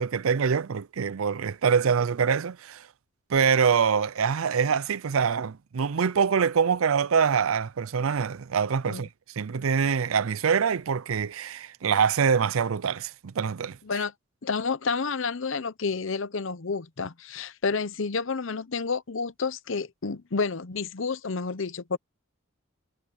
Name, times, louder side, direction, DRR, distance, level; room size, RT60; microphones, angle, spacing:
voice 1, 0.0-2.9 3.3-9.1 9.4-13.8, right 6 dB, 80° right, 0.5 m, -24 dB
voice 2, 14.4-22.0, left 4 dB, 65° left, 0.8 m, -30 dB
head